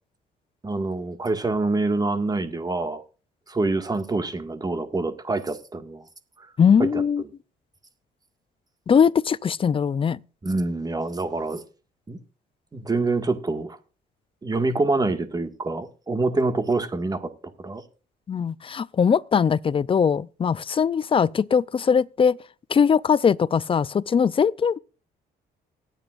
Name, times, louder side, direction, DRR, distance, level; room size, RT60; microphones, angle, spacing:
voice 1, 0.6-3.0 3.5-6.0 6.4-6.5 6.8-7.0 10.4-11.6 12.1-12.2 12.7-13.8 14.4-17.3 17.6-17.8, right 3 dB, 20° right, 1.8 m, -26 dB
voice 2, 6.6-7.2 8.9-10.2 18.3-22.4 22.7-24.8, left 6 dB, 30° left, 0.5 m, -21 dB
25.5 x 9.0 x 2.5 m
cardioid pair, 105°, 18 cm